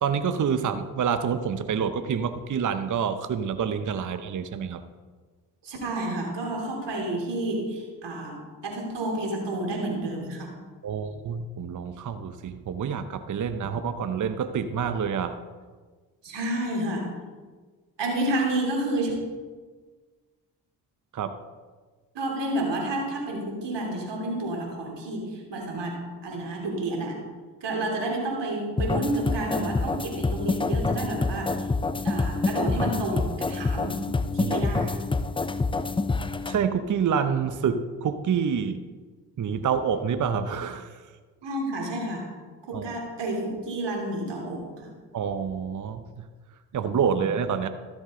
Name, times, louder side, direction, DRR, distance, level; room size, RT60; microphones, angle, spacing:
voice 1, 0.0-4.8 10.8-15.4 21.1-21.4 34.4-34.6 36.5-38.8 39.4-41.1 42.7-43.0 45.1-46.2 46.7-47.7, right 7 dB, 40° right, 10 dB, 0.8 m, -27 dB
voice 2, 5.6-10.6 16.2-17.1 18.0-19.1 22.1-25.9 26.2-27.2 27.6-31.7 32.0-34.0 34.3-35.1 41.4-42.3 42.7-44.9 47.1-47.2, right 1 dB, 60° right, -1 dB, 3.1 m, -30 dB
sound 1, 28.8-36.6, left 3 dB, 10° left, 0.5 m, -27 dB
13.0 x 7.1 x 3.8 m, 1.4 s
hypercardioid pair, 40°, 48 cm